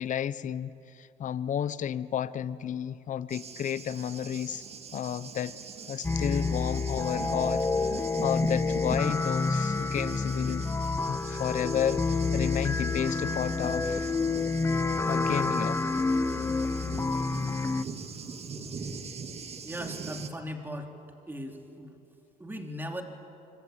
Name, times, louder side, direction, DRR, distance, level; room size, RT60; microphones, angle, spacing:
voice 1, 0.0-4.6 4.9-5.5 5.9-10.7 11.1-14.1 15.1-15.8, left 9 dB, 50° left, 16 dB, 0.9 m, -32 dB
Thunder, 3.3-20.3, right 5 dB, 40° right, 1.9 m, -42 dB
sound 1, 6.0-17.8, left 3 dB, 15° left, 0.8 m, -28 dB
voice 2, 19.6-20.9 21.3-22.0 22.4-23.0, equal, 10° right, 4 dB, 3.2 m, -38 dB
25.5 x 25.0 x 8.8 m, 2.7 s
cardioid pair, 110°, 17 cm